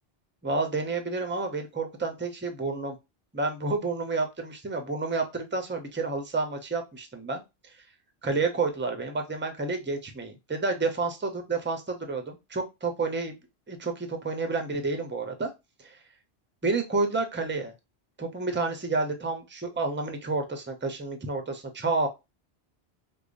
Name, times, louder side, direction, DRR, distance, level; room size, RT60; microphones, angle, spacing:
voice 1, 0.4-3.0 3.3-7.4 8.2-13.4 13.7-15.5 15.8-16.0 16.6-17.7 18.2-22.1, right 3 dB, 15° right, 5 dB, 0.5 m, -30 dB
5.0 x 2.3 x 2.5 m, 0.23 s
omnidirectional pair, 1.1 m